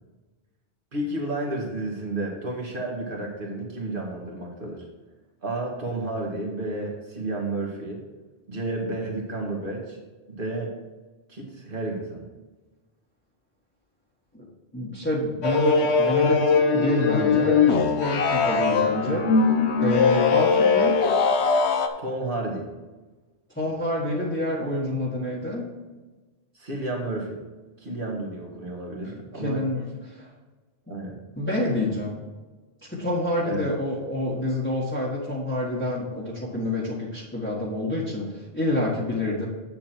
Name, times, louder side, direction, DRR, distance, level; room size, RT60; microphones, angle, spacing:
voice 1, 0.9-4.9 5.4-8.0 8.5-10.0 10.3-10.7 11.3-12.2 22.0-22.7 26.5-27.4 27.8-29.6 30.9-31.2 33.4-33.7, right 2 dB, 50° right, -1 dB, 2.1 m, -31 dB
voice 2, 14.7-19.3 19.8-21.0 23.5-25.7 29.0-30.3 31.3-32.2 32.8-39.4, left 1 dB, 10° left, -6 dB, 1.7 m, -27 dB
sound 1, 15.4-21.9, left 5 dB, 85° left, 1.1 m, -21 dB
8.6 x 7.0 x 4.6 m, 1.2 s
omnidirectional pair, 1.1 m